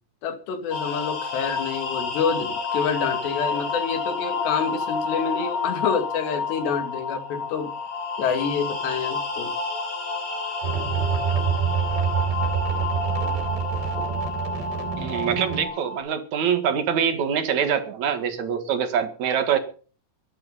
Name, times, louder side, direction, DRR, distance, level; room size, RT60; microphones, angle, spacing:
voice 1, 0.2-7.7 8.2-9.5, left 6 dB, 85° left, 7 dB, 4.4 m, -27 dB
sound 1, 0.7-16.0, left 4 dB, 35° left, 6.6 m, -29 dB
sound 2, 10.6-15.6, right 7 dB, 75° right, 5.3 m, -26 dB
voice 2, 15.0-19.6, right 8 dB, 55° right, 9 dB, 2.7 m, -24 dB
22.5 x 11.5 x 4.1 m, 0.40 s
omnidirectional pair, 4.8 m